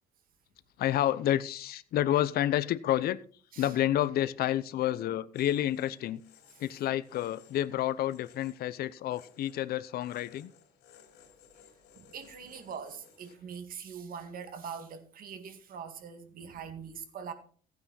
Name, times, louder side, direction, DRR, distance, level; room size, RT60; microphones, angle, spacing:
voice 1, 0.8-3.2 3.6-6.2 6.6-10.5, left 12 dB, 65° left, 16 dB, 0.8 m, -29 dB
sound 1, 5.3-13.4, left 8 dB, 85° left, 3.9 m, -60 dB
voice 2, 12.0-17.3, right 6 dB, 60° right, 8 dB, 2.1 m, -43 dB
15.0 x 9.5 x 4.1 m, 0.43 s
cardioid pair, 110°, 17 cm